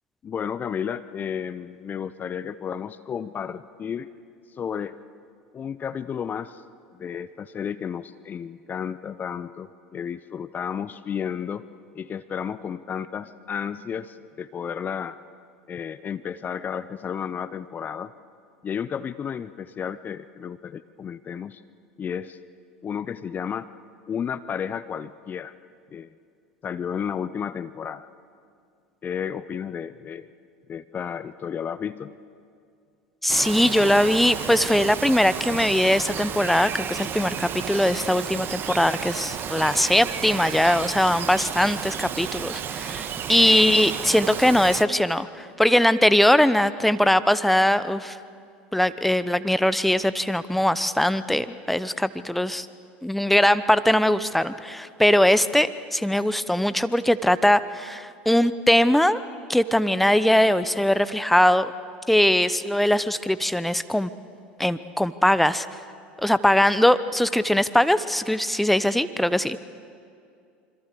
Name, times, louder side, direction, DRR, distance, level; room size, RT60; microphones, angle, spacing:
voice 1, 0.2-4.1 4.5-4.9 5.5-6.6 6.9-11.7 11.9-15.2 15.7-18.1 18.6-21.6 22.0-22.4 22.8-23.7 24.1-25.5 25.9-26.1 26.6-28.1 29.0-30.3 30.7-32.1, left 7 dB, 30° left, 15 dB, 0.7 m, -32 dB
voice 2, 33.2-48.2 48.7-52.7 53.0-59.2 59.5-61.7 62.1-64.1 64.6-65.7 66.2-69.6, left 1 dB, ahead, 14 dB, 0.9 m, -21 dB
Bird vocalization bird call bird song, 33.3-44.8, right 8 dB, 40° right, 1.4 m, -32 dB
26.5 x 25.5 x 6.9 m, 2.4 s
hypercardioid pair, 75°, 6 cm